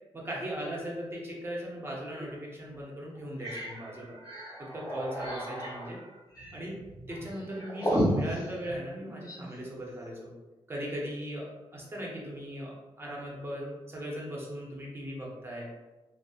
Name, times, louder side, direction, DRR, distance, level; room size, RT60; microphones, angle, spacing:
voice 1, 0.1-4.2 4.6-6.0 6.5-6.7 7.1-10.3 10.7-15.7, equal, 20° right, -4 dB, 0.7 m, -38 dB
sound 1, 2.1-2.3 2.7-2.8 3.2-9.5, equal, 35° left, 1.4 m, -34 dB
2.7 x 2.1 x 2.3 m, 1.1 s
cardioid pair, 100°, 11 cm